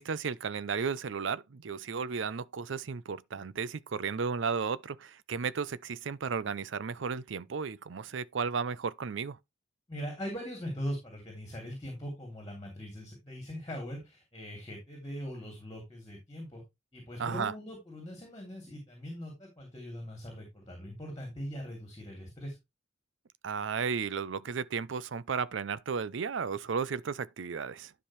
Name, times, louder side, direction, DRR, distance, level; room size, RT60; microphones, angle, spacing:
voice 1, 0.0-9.4 17.2-17.5 23.4-27.9, right 5 dB, 70° right, 0.5 m, -34 dB
voice 2, 9.9-16.6 16.9-22.6, equal, 20° left, 2.9 m, -41 dB
11.5 x 5.1 x 3.1 m
head